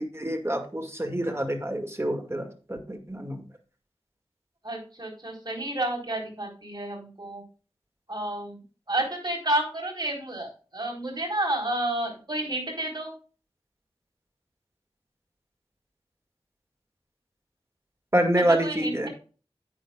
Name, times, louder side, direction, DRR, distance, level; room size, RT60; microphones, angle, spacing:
voice 1, 0.0-3.4 18.1-19.1, right 1 dB, 25° right, 5 dB, 2.2 m, -27 dB
voice 2, 4.6-7.4 8.1-8.6 8.9-13.1 18.4-19.1, right 1 dB, 45° right, 1 dB, 4.2 m, -30 dB
10.0 x 9.0 x 2.4 m, 0.36 s
wide cardioid pair, 45°, 10 cm